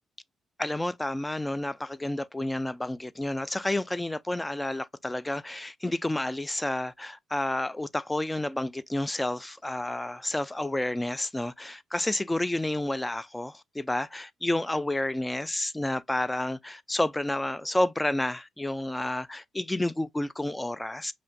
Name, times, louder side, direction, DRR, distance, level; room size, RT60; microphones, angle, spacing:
voice 1, 0.6-21.1, left 1 dB, 10° left, 0.3 m, -30 dB
5.4 x 2.1 x 2.6 m
cardioid pair, 90°, 0 cm